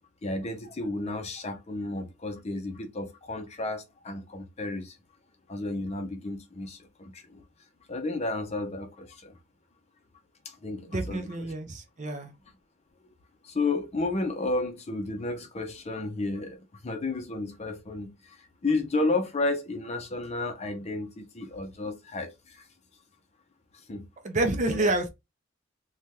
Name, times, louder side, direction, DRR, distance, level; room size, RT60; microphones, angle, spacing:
voice 1, 0.2-5.0 5.5-7.4 7.9-9.4 10.4-11.3 13.4-22.6 23.9-24.0 24.7-24.9, left 2 dB, 30° left, 0.5 m, -32 dB
voice 2, 10.9-12.3 24.2-25.1, right 2 dB, 35° right, 0.5 m, -28 dB
3.3 x 2.3 x 2.7 m
head